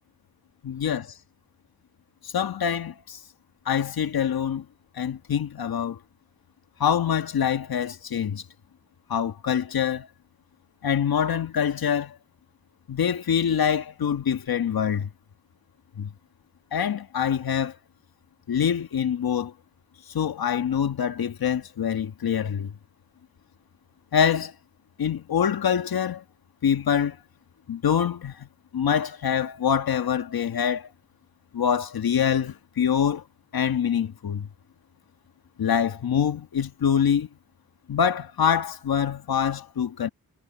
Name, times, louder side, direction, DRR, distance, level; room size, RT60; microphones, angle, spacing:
voice 1, 0.6-1.1 2.3-3.2 3.6-4.6 5.0-6.0 6.8-8.4 9.1-10.1 10.8-12.1 12.9-15.1 16.0-16.1 16.7-17.7 18.5-19.5 20.1-22.7 24.1-24.5 25.0-26.2 26.6-27.2 27.7-28.5 28.7-30.9 31.5-33.2 33.5-34.5 35.6-37.3 37.9-40.1, left 8 dB, 75° left, 1.7 m, -25 dB
cardioid pair, 45°, 36 cm